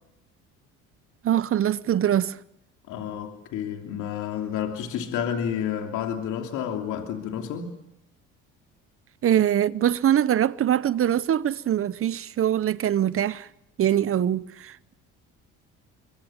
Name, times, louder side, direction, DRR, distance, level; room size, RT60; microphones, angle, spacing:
voice 1, 1.2-2.4 9.2-13.5 13.8-14.9, right 10 dB, 45° right, 0.9 m, -23 dB
voice 2, 2.9-7.7, left 8 dB, 70° left, 3.0 m, -30 dB
24.0 x 23.0 x 7.3 m
supercardioid pair, 80°, 31 cm